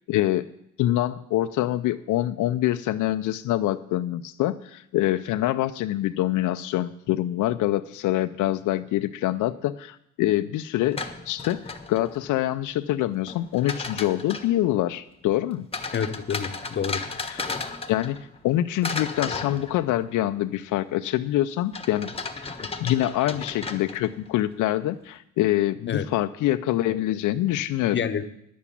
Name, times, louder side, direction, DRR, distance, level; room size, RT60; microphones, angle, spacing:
voice 1, 0.1-0.5 0.8-11.0 11.3-15.7 17.3-17.4 17.9-18.2 18.4-22.1 22.8-28.0, left 14 dB, 85° left, 9 dB, 0.5 m, -25 dB
sound 1, 10.7-12.3 13.3-14.6 15.7-18.5 18.8-20.2 21.7-24.3, left 4 dB, 20° left, 1.1 m, -35 dB
voice 2, 15.9-17.0 22.6-22.9 25.9-26.0 27.9-28.2, left 7 dB, 40° left, 8 dB, 0.9 m, -28 dB
10.5 x 7.3 x 8.4 m, 0.76 s
cardioid pair, 90°, 30 cm